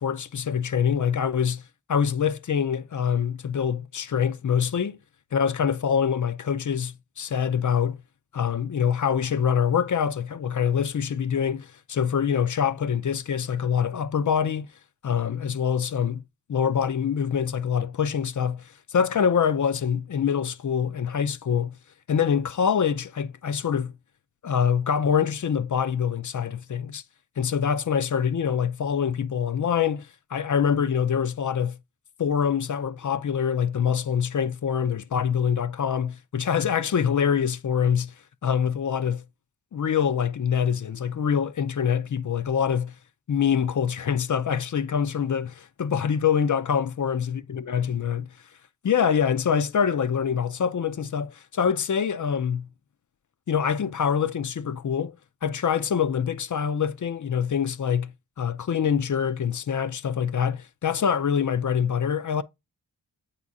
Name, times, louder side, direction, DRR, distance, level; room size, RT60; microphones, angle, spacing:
voice 1, 0.0-1.6 1.9-5.0 5.3-8.0 8.3-14.7 15.0-16.2 16.5-21.7 22.1-23.9 24.4-27.0 27.4-31.8 32.2-38.1 38.4-39.2 39.7-42.9 43.3-48.3 48.8-52.7 53.5-55.1 55.4-58.1 58.4-62.4, left 7 dB, 45° left, 0.5 m, -25 dB
8.1 x 2.8 x 4.7 m
cardioid pair, 50°, 41 cm